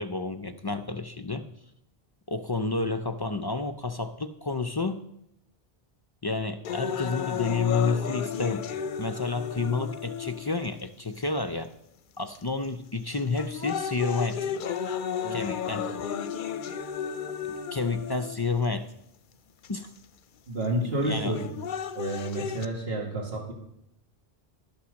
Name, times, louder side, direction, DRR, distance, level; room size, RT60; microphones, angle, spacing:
voice 1, 0.0-1.4 2.3-5.0 6.2-8.6 9.0-11.7 12.2-14.5 15.3-16.0 17.7-18.9 19.7-19.9 21.0-21.4, left 4 dB, 40° left, 9 dB, 0.3 m, -30 dB
sound 1, 6.6-10.7 11.4-11.5 12.3-12.7 13.1-18.7 19.6-19.7 21.1-22.7, left 7 dB, 60° left, 0.7 m, -33 dB
voice 2, 20.5-21.4 21.9-23.5, right 1 dB, 70° right, -1 dB, 2.2 m, -30 dB
12.0 x 5.8 x 6.3 m, 0.80 s
omnidirectional pair, 1.0 m